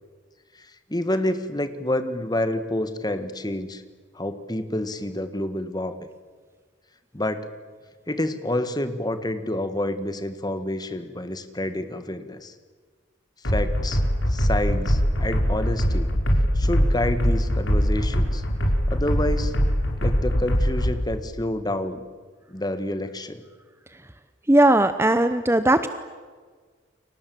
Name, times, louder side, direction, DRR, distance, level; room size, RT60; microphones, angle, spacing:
voice 1, 0.6-3.8 4.2-6.0 7.1-7.5 8.1-12.5 13.4-14.0 14.3-16.1 16.6-18.4 18.9-19.5 20.0-22.0 22.5-23.4, left 1 dB, 20° left, 10 dB, 1.6 m, -28 dB
sound 1, 13.4-21.0, equal, 70° left, 5.2 m, -22 dB
voice 2, 24.5-25.9, right 1 dB, 15° right, 11 dB, 0.8 m, -18 dB
30.0 x 24.5 x 7.8 m, 1.5 s
head